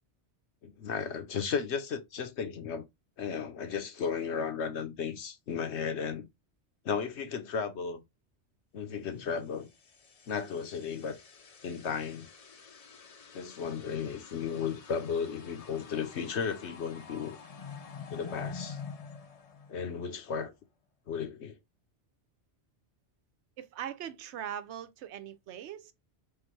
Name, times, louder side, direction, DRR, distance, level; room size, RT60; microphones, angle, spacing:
voice 1, 0.6-2.8 3.2-6.2 6.8-8.0 8.7-9.7 10.3-11.2 11.6-12.3 13.3-17.4 18.1-18.8 19.7-20.5 21.1-21.5, left 6 dB, 80° left, 1.1 m, -34 dB
sound 1, 9.6-20.3, left 5 dB, 45° left, 0.5 m, -47 dB
voice 2, 23.6-25.9, right 10 dB, 80° right, 0.9 m, -40 dB
3.9 x 3.2 x 3.1 m
omnidirectional pair, 1.1 m